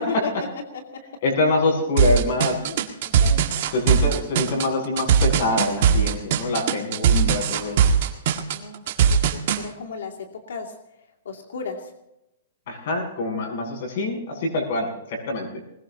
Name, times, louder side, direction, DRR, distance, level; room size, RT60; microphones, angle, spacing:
voice 1, 1.2-2.6 3.7-7.8 12.7-15.5, left 2 dB, 45° left, -1 dB, 7.3 m, -25 dB
sound 1, 2.0-9.6, right 7 dB, 40° right, 1.9 m, -19 dB
voice 2, 2.4-2.8 3.2-3.7 8.5-9.3 9.6-10.1 10.5-10.7 11.2-11.9, left 5 dB, 80° left, 2 dB, 2.5 m, -34 dB
21.0 x 20.5 x 2.9 m, 0.86 s
hypercardioid pair, 175°, 0 cm